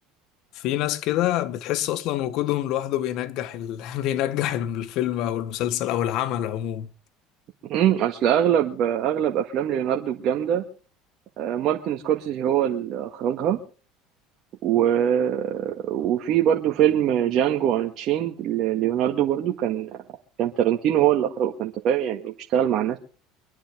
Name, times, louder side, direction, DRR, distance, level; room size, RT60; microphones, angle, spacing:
voice 1, 0.5-6.9, left 12 dB, 65° left, 1.3 m, -26 dB
voice 2, 7.7-10.6 11.4-13.6 14.6-20.0 20.4-23.0, right 10 dB, 55° right, 1.7 m, -23 dB
24.5 x 10.0 x 3.7 m
hypercardioid pair, 80°, 0 cm